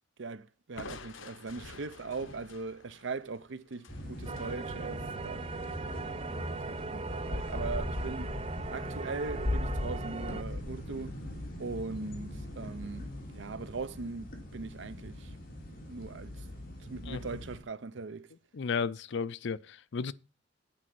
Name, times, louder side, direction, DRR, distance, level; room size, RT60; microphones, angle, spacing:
voice 1, 0.2-8.3 8.7-11.1 11.6-15.4 15.9-16.4 16.8-18.3, right 4 dB, 70° right, 0.7 m, -40 dB
Crushing, 0.8-4.5, left 4 dB, 85° left, 0.9 m, -49 dB
sound 1, 3.9-17.6, left 1 dB, 50° left, 3.0 m, -39 dB
sound 2, 4.2-10.4, right 4 dB, 30° right, 0.5 m, -40 dB
voice 2, 18.5-20.1, left 5 dB, 65° left, 0.5 m, -33 dB
8.8 x 5.3 x 7.6 m
head